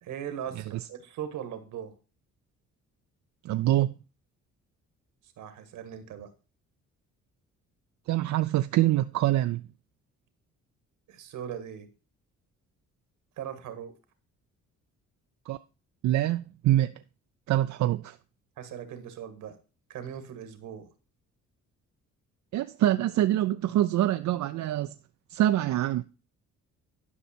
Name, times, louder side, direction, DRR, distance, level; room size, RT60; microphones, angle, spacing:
voice 1, 0.0-2.0 5.4-6.3 11.1-11.9 13.4-14.0 18.6-19.6 19.9-20.9, right 9 dB, 85° right, 1.6 m, -39 dB
voice 2, 3.4-3.9 8.1-9.6 15.5-15.6 16.0-16.9 17.5-18.2 22.5-24.9 25.3-26.0, right 14 dB, 70° right, 0.5 m, -25 dB
11.0 x 5.5 x 4.4 m
cardioid pair, 90°, 30 cm